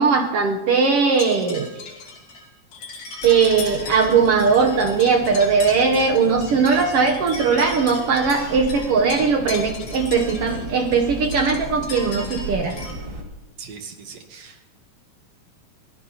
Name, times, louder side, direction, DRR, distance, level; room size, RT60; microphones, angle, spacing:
voice 1, 0.0-1.7 3.2-12.7, right 5 dB, 80° right, 2 dB, 1.3 m, -19 dB
sound 1, 1.1-12.9, left 3 dB, 70° left, 4.5 m, -37 dB
sound 2, 3.2-13.2, right 1 dB, 35° right, 1.3 m, -36 dB
voice 2, 13.6-14.7, right 6 dB, 65° right, 5 dB, 1.9 m, -40 dB
24.0 x 17.0 x 2.9 m, 1.0 s
omnidirectional pair, 4.1 m